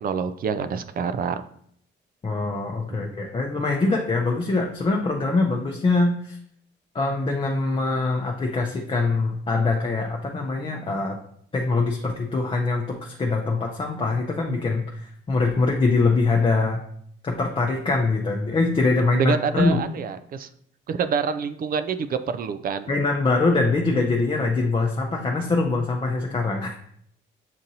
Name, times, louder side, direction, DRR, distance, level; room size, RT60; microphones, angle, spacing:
voice 1, 0.0-1.4 2.9-3.0 19.1-20.5 20.9-22.9, right 6 dB, 45° right, 11 dB, 0.4 m, -27 dB
voice 2, 2.2-6.4 6.9-11.2 11.5-15.0 15.3-16.8 17.2-19.8 22.9-26.8, left 3 dB, 25° left, 0 dB, 0.6 m, -23 dB
7.4 x 2.6 x 2.8 m, 0.66 s
cardioid pair, 90°, 20 cm